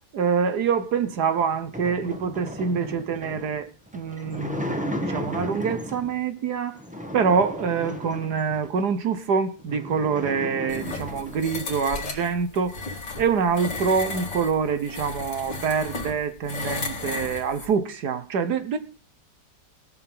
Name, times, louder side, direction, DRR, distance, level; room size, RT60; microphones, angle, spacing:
voice 1, 0.1-6.8 7.1-12.8 13.2-18.8, right 6 dB, 65° right, 1.6 m, -25 dB
sound 1, 1.0-6.2 6.7-8.8 9.3-9.4 9.6-11.5, equal, 5° right, 1.2 m, -35 dB
sound 2, 10.7-17.7, left 4 dB, 80° left, 2.8 m, -34 dB
17.5 x 6.9 x 5.5 m
omnidirectional pair, 1.9 m